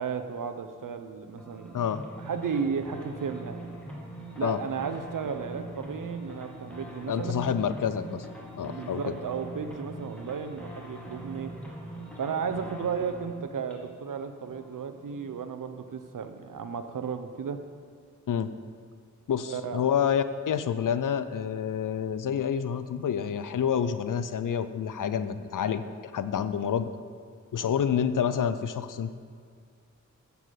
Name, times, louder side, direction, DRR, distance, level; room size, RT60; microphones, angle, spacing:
voice 1, 0.0-1.8 2.2-3.6 4.4-7.3 8.6-11.5 12.2-17.6 19.5-19.8, right 6 dB, 90° right, 9 dB, 0.7 m, -34 dB
sound 1, 1.4-15.5, right 1 dB, 5° left, 2.3 m, -43 dB
voice 2, 7.1-8.3 8.6-9.0 18.3-18.5 19.3-25.8 26.1-26.9 27.5-29.1, left 8 dB, 80° left, 12 dB, 0.6 m, -28 dB
8.1 x 6.9 x 7.5 m, 2.1 s
cardioid pair, 45°, 31 cm